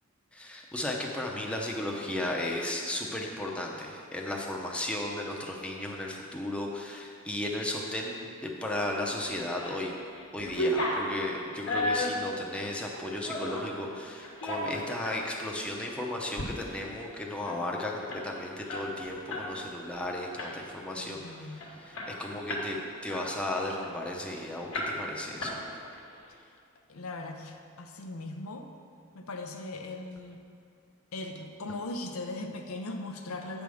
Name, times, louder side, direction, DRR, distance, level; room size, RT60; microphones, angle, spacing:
voice 1, 0.3-10.0 10.3-21.2 21.9-25.8, left 1 dB, 5° left, -2 dB, 0.6 m, -35 dB
sound 1, 9.3-9.8 10.1-13.7 14.2-15.2 15.6-15.8 16.2-16.5 16.8-16.9 17.2-19.5 19.8-20.0 20.4-20.8 21.3-21.4 21.6-22.7 23.1-24.3 24.7-25.1 25.4-26.0, left 1 dB, 65° left, 1.1 m, -34 dB
voice 2, 13.4-13.9 21.0-21.6 26.5-26.6 26.9-28.7 29.1-30.4 31.1-33.6, left 2 dB, 85° left, 4 dB, 0.6 m, -39 dB
8.4 x 3.5 x 6.3 m, 2.3 s
head